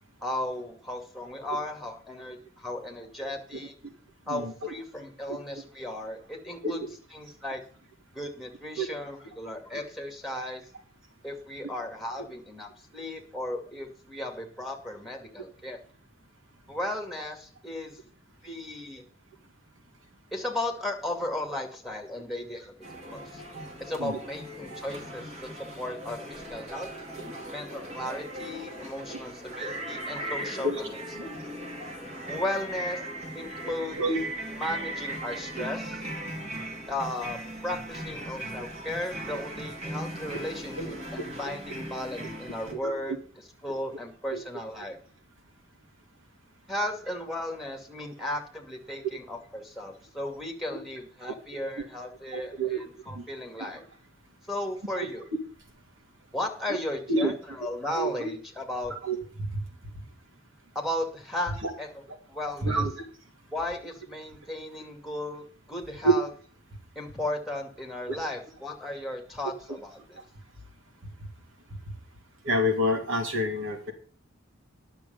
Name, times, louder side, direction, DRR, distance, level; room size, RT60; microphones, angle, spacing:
voice 1, 0.2-3.8 4.3-6.8 7.1-7.6 8.1-10.6 11.2-15.8 16.7-18.0 18.4-19.0 20.3-22.8 23.1-23.4 23.8-26.9 27.5-31.4 32.3-33.0 33.3-34.0 34.6-36.0 36.9-43.1 43.6-45.0 46.7-53.8 54.5-55.3 56.3-58.9 60.7-62.0 62.3-62.8 63.5-66.3 67.0-70.2, left 1 dB, ahead, 2 dB, 2.3 m, -35 dB
sound 1, 22.8-42.7, right 1 dB, 35° right, 2.5 m, -38 dB
voice 2, 52.3-52.8 53.1-53.2 57.1-57.3 57.9-58.3 59.0-59.2 59.5-59.6 62.6-63.1 66.0-66.1 68.1-68.2 72.4-73.9, right 1 dB, 85° right, 3 dB, 2.6 m, -27 dB
10.5 x 6.6 x 7.0 m, 0.43 s
head